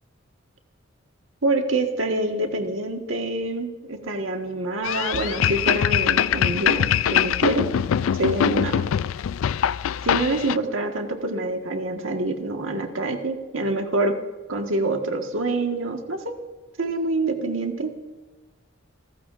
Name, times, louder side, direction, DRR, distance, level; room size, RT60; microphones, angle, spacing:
voice 1, 1.4-7.7 8.1-8.9 10.0-14.1 14.5-16.3 16.8-17.9, right 2 dB, 80° right, 4 dB, 1.6 m, -26 dB
sound 1, 4.8-10.6, left 9 dB, 85° left, 0.3 m, -23 dB
28.0 x 14.5 x 2.6 m, 1.3 s
head